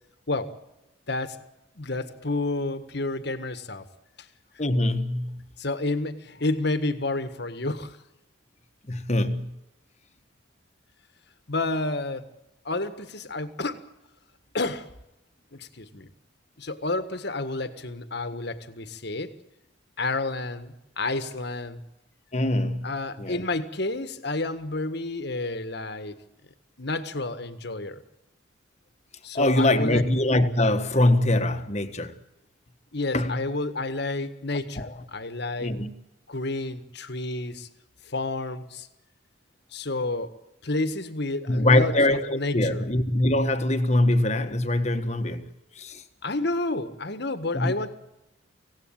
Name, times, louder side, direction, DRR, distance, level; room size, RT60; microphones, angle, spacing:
voice 1, 1.1-1.4 1.7-3.9 4.2-4.3 5.6-8.0 11.5-12.3 12.6-13.9 14.5-14.9 15.5-16.1 16.6-19.4 20.0-21.8 22.8-26.2 26.8-28.0 29.2-30.1 32.9-35.7 36.3-37.7 38.0-38.9 39.7-40.4 40.6-42.8 46.2-47.9, left 2 dB, 55° left, 1.6 m, -30 dB
voice 2, 4.6-5.4 8.9-9.6 22.3-22.9 23.2-23.4 29.3-32.1 33.1-33.4 34.8-34.9 35.6-35.9 41.5-45.4 45.7-46.0 47.5-47.7, left 1 dB, 35° left, 1.5 m, -23 dB
25.5 x 17.0 x 9.0 m
head